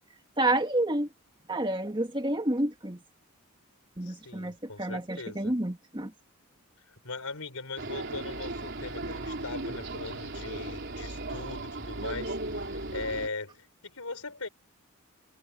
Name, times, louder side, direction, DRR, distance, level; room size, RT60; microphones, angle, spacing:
voice 1, 0.4-1.1 1.5-3.0 4.0-6.1, right 1 dB, 20° right, 2.0 m, -29 dB
voice 2, 4.0-5.5 6.9-14.5, left 3 dB, 80° left, 4.5 m, -40 dB
sound 1, 7.8-13.3, right 2 dB, 50° right, 3.6 m, -36 dB
head